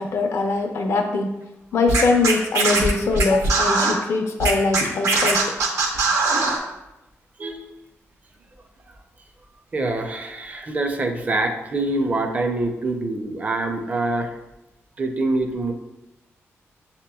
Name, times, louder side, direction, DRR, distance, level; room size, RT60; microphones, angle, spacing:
voice 1, 0.0-1.4 1.7-5.4, left 3 dB, 70° left, 4 dB, 0.5 m, -22 dB
Scratching (performance technique), 1.9-3.9 4.4-6.6, right 3 dB, 80° right, 0.8 m, -20 dB
voice 2, 9.7-14.4 15.0-15.7, right 2 dB, 30° right, 5 dB, 0.4 m, -25 dB
6.6 x 2.9 x 2.3 m, 0.96 s
wide cardioid pair, 145°, 5 cm